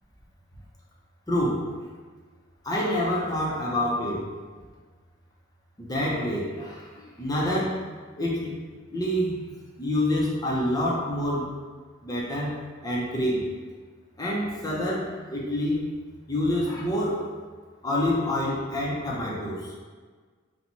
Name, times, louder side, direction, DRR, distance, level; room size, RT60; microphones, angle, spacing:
voice 1, 1.3-1.7 2.6-4.2 5.8-7.8 8.1-8.5 8.9-9.4 9.8-11.5 12.0-13.5 14.2-15.9 16.3-17.3 17.8-19.7, left 1 dB, 20° left, -4 dB, 0.9 m, -27 dB
4.5 x 2.4 x 4.2 m, 1.5 s
head